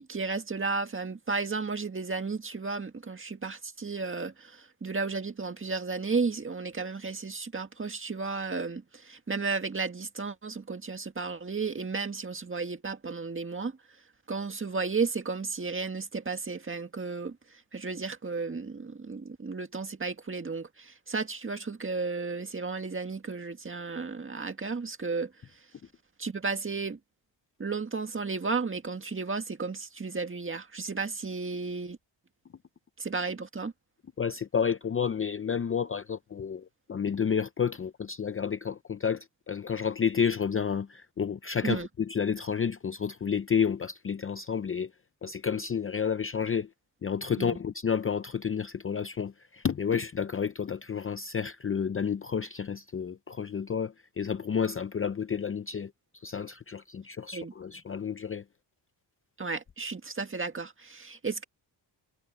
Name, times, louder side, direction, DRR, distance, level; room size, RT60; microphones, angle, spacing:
voice 1, 0.0-13.7 14.3-25.3 26.2-27.0 27.6-32.0 33.0-33.7 41.6-41.9 47.4-47.6 57.3-57.5 59.4-61.4, right 4 dB, 25° right, 1.9 m, -33 dB
voice 2, 34.2-44.9 45.2-46.7 47.0-58.4, left 7 dB, 30° left, 0.5 m, -30 dB
wide cardioid pair, 120°, 45 cm